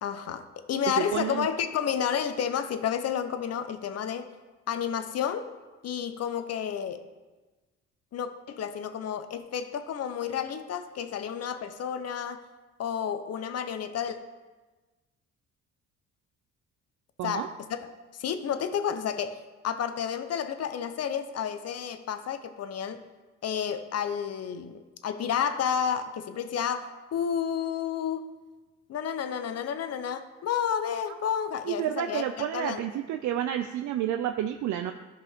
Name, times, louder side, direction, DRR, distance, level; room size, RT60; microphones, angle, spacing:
voice 1, 0.0-4.3 4.7-5.5 5.8-7.0 8.1-12.4 12.8-14.2 17.2-17.8 18.1-23.1 23.4-28.2 28.9-32.8, left 8 dB, 55° left, 9 dB, 0.8 m, -31 dB
voice 2, 1.0-1.5 17.2-17.5 31.1-31.2 31.6-34.9, right 11 dB, 75° right, 6 dB, 0.5 m, -30 dB
13.5 x 5.1 x 3.6 m, 1.2 s
cardioid pair, 90°, 30 cm